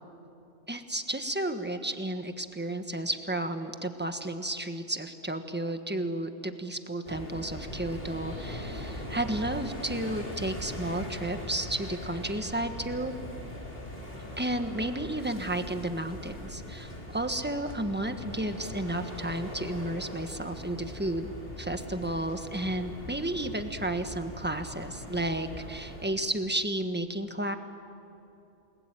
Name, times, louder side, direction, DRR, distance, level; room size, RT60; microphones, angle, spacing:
voice 1, 0.7-13.1 14.4-27.6, right 1 dB, 10° right, 7 dB, 1.4 m, -32 dB
sound 1, 7.1-26.1, left 1 dB, 50° left, 4.0 m, -40 dB
29.0 x 21.0 x 9.1 m, 2.9 s
omnidirectional pair, 1.2 m